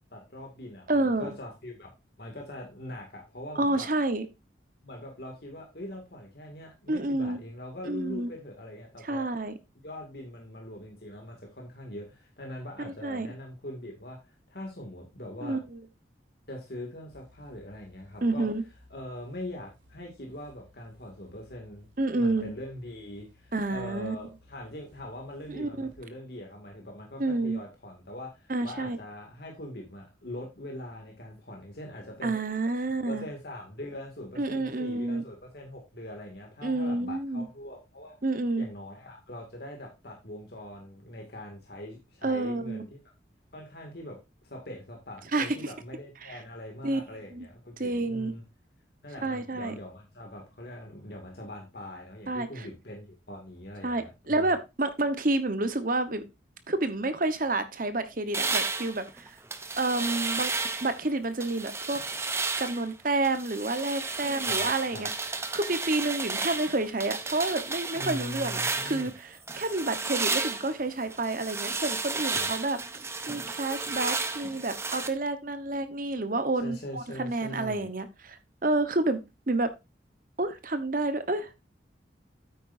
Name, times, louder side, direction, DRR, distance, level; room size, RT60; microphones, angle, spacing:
voice 1, 0.1-1.9 2.2-3.9 4.8-9.3 9.8-15.6 16.5-18.5 18.9-21.9 22.1-32.3 33.1-38.2 38.6-43.0 43.5-44.2 44.4-48.4 49.0-54.5 64.4-65.1 67.9-69.1 72.3-72.5 76.6-77.9, left 1 dB, 55° left, 1 dB, 2.3 m, -42 dB
voice 2, 0.9-1.3 3.6-4.3 6.9-7.4 7.8-8.3 9.0-9.5 12.8-13.3 15.4-15.8 18.2-18.6 22.0-22.5 23.5-24.2 25.5-25.9 27.2-27.6 28.5-29.0 32.2-33.3 34.4-35.2 36.6-37.5 38.2-38.7 42.2-42.8 45.3-45.6 46.3-46.4 46.8-47.0 47.3-47.5 47.8-48.3 49.2-49.7 52.3-52.7 53.8-56.2 56.7-59.4 59.8-60.5 60.8-62.0 62.6-65.1 65.5-72.8 73.3-79.2 79.5-79.7 80.4-81.5, right 2 dB, 50° right, 10 dB, 1.1 m, -29 dB
sound 1, 17.1-26.0, left 1 dB, 80° right, 4.4 m, -60 dB
sound 2, 58.3-61.0 61.4-62.9 63.2-69.1 69.5-75.1, right 4 dB, 15° right, 0.7 m, -32 dB
9.2 x 8.8 x 2.7 m, 0.25 s
head